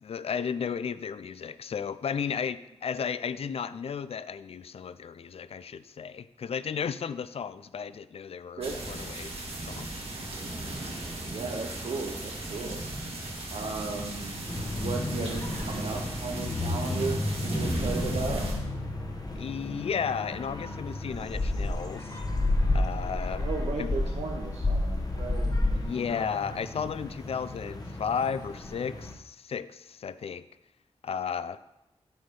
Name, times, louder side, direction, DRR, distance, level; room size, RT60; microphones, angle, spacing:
voice 1, 0.0-9.3 9.7-9.9 19.4-22.1 22.7-23.5 23.8-23.9 25.8-30.4 31.0-31.6, left 7 dB, 60° left, 15 dB, 0.4 m, -34 dB
sound 1, 8.6-18.5, right 1 dB, 60° right, 1.9 m, -36 dB
voice 2, 11.3-12.8 13.5-14.5 14.7-18.4 23.4-25.5, right 4 dB, 85° right, 0 dB, 0.7 m, -35 dB
Sound recording Venice, 14.5-29.1, left 2 dB, 35° left, 0.9 m, -31 dB
7.9 x 4.2 x 5.2 m, 0.91 s
wide cardioid pair, 75°, 11 cm